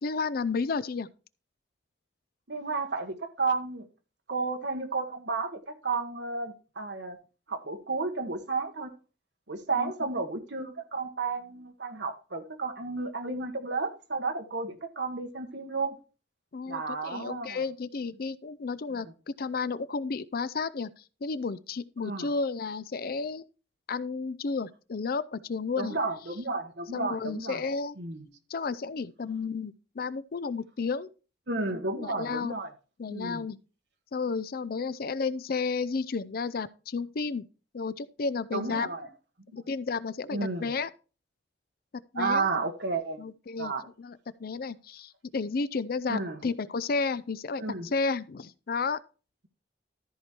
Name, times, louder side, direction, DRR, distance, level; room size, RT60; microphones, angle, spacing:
voice 1, 0.0-1.1 9.7-9.9 16.5-23.4 23.9-26.0 26.9-28.0 28.5-31.1 32.0-32.5 33.0-33.6 34.1-37.5 37.7-38.9 39.5-40.9 42.1-42.5 43.2-43.7 44.0-49.0, left 4 dB, 50° left, 0.5 m, -32 dB
voice 2, 2.5-3.9 4.3-7.2 7.5-8.9 9.5-16.0 16.7-17.6 18.9-19.0 22.0-22.3 25.8-27.6 28.0-28.3 31.5-32.7 33.1-33.4 38.5-39.1 40.3-40.7 42.1-43.2 43.6-43.9 46.1-46.4 47.6-47.9, right 3 dB, 70° right, 1.4 m, -32 dB
13.5 x 4.8 x 4.4 m
head